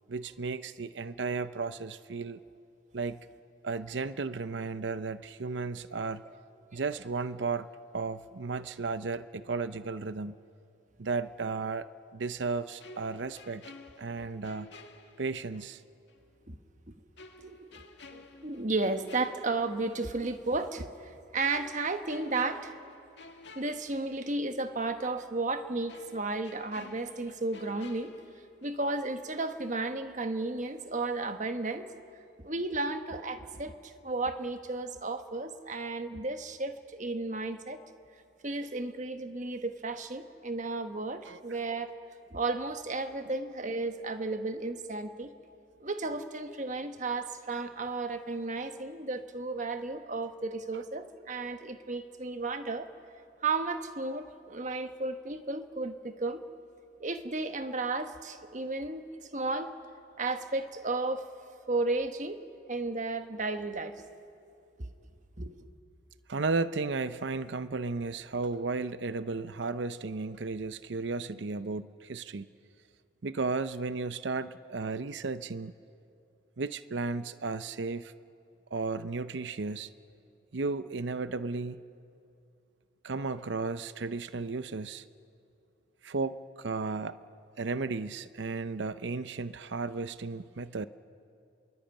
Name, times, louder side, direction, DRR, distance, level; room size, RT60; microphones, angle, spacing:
voice 1, 0.1-2.4 2.9-3.3 3.6-6.2 6.7-7.7 7.9-10.4 11.0-11.9 12.1-13.6 14.0-14.7 15.2-15.8 41.2-41.4 50.7-50.8 66.3-72.5 73.2-75.7 76.6-78.1 78.7-79.9 80.5-81.8 83.0-85.0 86.0-87.2 87.6-90.9, right 4 dB, 70° right, 13 dB, 0.7 m, -34 dB
sound 1, 12.8-15.7 16.1-16.2 17.2-20.1 20.4-20.6 21.5-24.5 24.8-24.9 25.9-28.9 29.2-29.4, left 3 dB, 65° left, 2.1 m, -52 dB
voice 2, 17.4-17.8 18.1-22.7 23.5-28.1 28.6-31.9 32.4-37.8 38.4-41.9 42.3-45.3 45.8-52.9 53.4-56.4 57.0-59.7 60.2-61.2 61.7-62.4 62.7-64.1 64.8-64.9 65.4-65.6, right 3 dB, 40° right, 8 dB, 1.3 m, -33 dB
27.5 x 23.0 x 9.0 m, 2.6 s
head